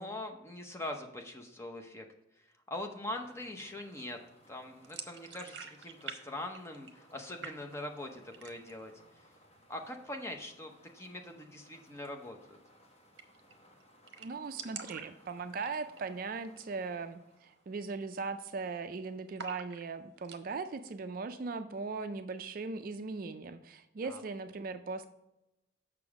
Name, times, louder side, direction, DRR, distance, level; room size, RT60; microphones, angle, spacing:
voice 1, 0.0-2.1 2.4-4.2 4.5-8.9 9.7-12.6 24.0-24.2, left 1 dB, 15° left, 3 dB, 0.7 m, -42 dB
sound 1, 2.7-18.2, equal, 30° left, 1.4 m, -63 dB
sound 2, 4.8-6.2 6.4-7.2 7.4-8.0 8.3-8.8 9.2-9.3 9.6-10.3 11.9-12.1 12.4-12.5 12.7-12.8 13.2-13.5 13.8-13.9 14.1-16.1 16.5-16.8 17.1-17.2 17.7-18.0 18.3-18.9 19.4-20.4, right 6 dB, 60° right, 0.8 m, -46 dB
voice 2, 14.2-25.1, right 4 dB, 45° right, 9 dB, 0.4 m, -39 dB
6.8 x 6.1 x 4.7 m, 0.91 s
head